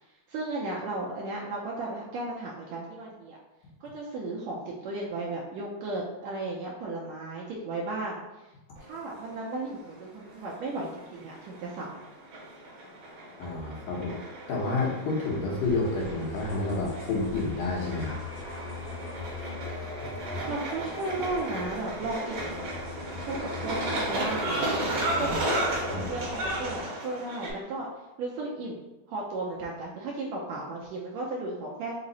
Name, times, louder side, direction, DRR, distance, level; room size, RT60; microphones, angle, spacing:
voice 1, 0.3-3.4 3.8-8.4 8.8-12.0 20.5-22.5 23.3-24.7 25.2-27.9 28.2-28.8 29.1-31.9, right 2 dB, 80° right, -3 dB, 1.6 m, -35 dB
sound 1, 8.8-27.5, right 1 dB, 55° right, 1.6 m, -35 dB
voice 2, 13.4-14.1 14.5-18.2 25.1-25.4 25.9-26.1, left 3 dB, 85° left, -3 dB, 2.5 m, -30 dB
sound 2, 15.6-26.8, left 4 dB, 70° left, 1.1 m, -40 dB
5.5 x 2.0 x 3.9 m, 1.0 s
omnidirectional pair, 3.5 m